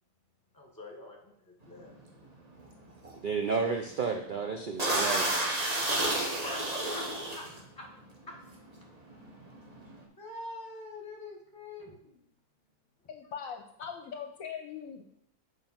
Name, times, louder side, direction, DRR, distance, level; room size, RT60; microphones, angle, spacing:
voice 1, 0.5-2.1 5.5-8.0 8.3-8.4 10.2-12.2, left 2 dB, 15° left, -1 dB, 1.8 m, -46 dB
sound 1, 1.8-2.0 2.5-2.7 3.0-3.1 3.7-4.0 4.3-4.4 4.8-7.6 8.3-8.6 8.8-10.0, right 1 dB, 30° right, 1.0 m, -31 dB
voice 2, 3.2-5.3, right 5 dB, 70° right, 3 dB, 0.4 m, -31 dB
voice 3, 13.1-15.0, left 7 dB, 65° left, 5 dB, 1.0 m, -41 dB
7.5 x 5.0 x 4.4 m, 0.69 s
omnidirectional pair, 1.7 m